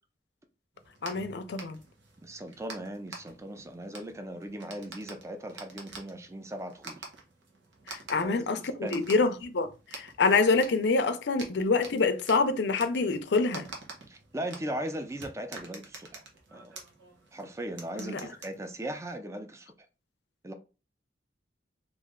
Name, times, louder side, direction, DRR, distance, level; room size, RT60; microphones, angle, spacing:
sound 1, 0.8-19.2, right 3 dB, 75° right, 1.0 m, -48 dB
voice 1, 1.0-1.8 7.9-13.7 18.0-18.2, left 4 dB, 65° left, 0.5 m, -26 dB
voice 2, 2.2-7.1 8.2-9.1 14.1-16.2 16.5-16.7 17.3-19.7 20.4-20.5, right 1 dB, 15° right, 0.5 m, -38 dB
3.1 x 2.6 x 3.6 m
head